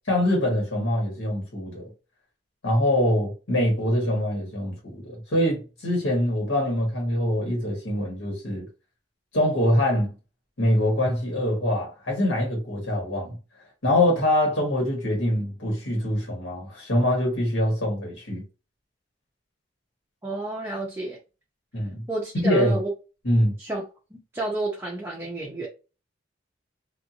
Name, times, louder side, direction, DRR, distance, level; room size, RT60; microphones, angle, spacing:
voice 1, 0.1-1.8 2.6-8.7 9.3-10.1 10.6-13.4 13.8-18.4 21.7-22.0 22.3-22.8 23.2-23.5, left 1 dB, 85° left, 1.4 m, -24 dB
voice 2, 20.2-21.2 22.1-22.9 23.6-23.8 24.1-25.7, right 2 dB, 15° right, 0.6 m, -30 dB
2.5 x 2.5 x 2.8 m
head